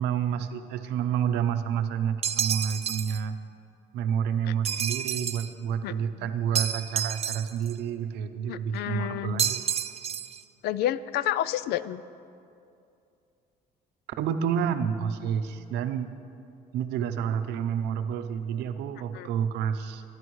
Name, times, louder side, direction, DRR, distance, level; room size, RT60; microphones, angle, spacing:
voice 1, 0.0-3.4 3.9-9.6 14.2-16.1 16.7-20.0, right 8 dB, 85° right, 9 dB, 0.7 m, -29 dB
sound 1, 2.2-3.2 4.6-5.5 6.5-7.7 9.4-10.4, right 9 dB, 40° right, 0.4 m, -30 dB
voice 2, 8.5-9.4 10.6-12.0 19.1-19.3, left 12 dB, 75° left, 16 dB, 0.4 m, -30 dB
21.0 x 10.5 x 3.2 m, 2.6 s
cardioid pair, 110°, 17 cm